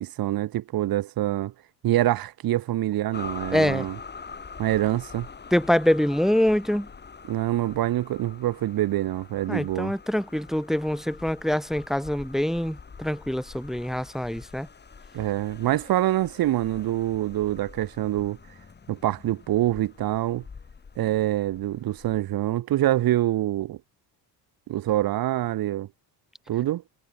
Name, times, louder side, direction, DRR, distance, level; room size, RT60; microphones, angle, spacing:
voice 1, 0.0-1.5 1.8-4.0 4.6-5.3 7.3-9.9 15.1-18.4 18.9-20.4 21.0-23.8 24.7-25.9 26.5-26.8, right 14 dB, 50° right, 1.5 m, -25 dB
sound 1, 3.1-22.2, left 5 dB, 20° left, 3.9 m, -45 dB
voice 2, 3.5-3.9 5.5-6.9 9.5-14.7, left 1 dB, ahead, 0.4 m, -25 dB
cardioid pair, 140°, 45 cm